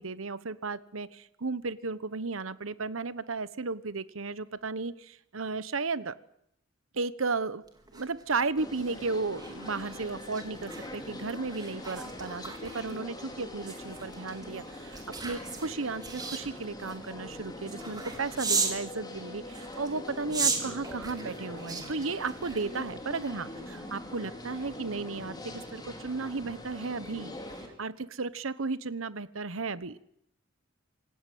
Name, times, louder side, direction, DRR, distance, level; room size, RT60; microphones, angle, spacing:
voice 1, 0.0-6.2 6.9-7.6 7.9-27.4 27.8-30.0, right 4 dB, 85° right, 15 dB, 1.1 m, -34 dB
sound 1, 7.7-18.8 19.5-23.1 23.5-23.7, right 4 dB, 20° right, 4.2 m, -37 dB
sound 2, 8.6-27.7, left 1 dB, 20° left, 4.5 m, -43 dB
27.0 x 16.5 x 9.4 m, 0.75 s
head